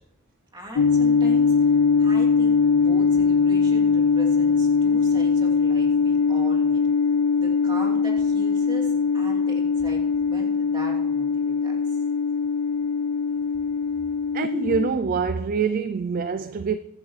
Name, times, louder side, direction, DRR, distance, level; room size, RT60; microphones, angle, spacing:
voice 1, 0.5-1.7 2.0-6.8 7.4-12.0, equal, 20° right, 3.1 m, -39 dB
sound 1, 0.8-14.9, left 5 dB, 70° left, 0.4 m, -21 dB
voice 2, 14.3-16.8, right 5 dB, 40° right, 0.4 m, -25 dB
23.5 x 10.5 x 3.3 m
head